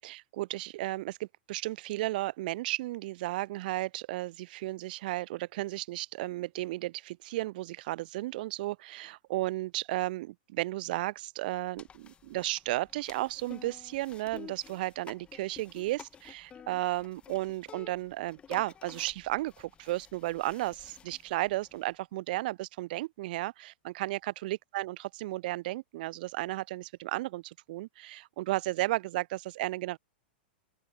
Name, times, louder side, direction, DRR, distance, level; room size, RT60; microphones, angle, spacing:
voice 1, 0.0-30.0, right 18 dB, 60° right, 0.4 m, -34 dB
sound 1, 11.8-21.9, left 7 dB, 20° left, 1.4 m, -52 dB
open air
hypercardioid pair, 135°, 5 cm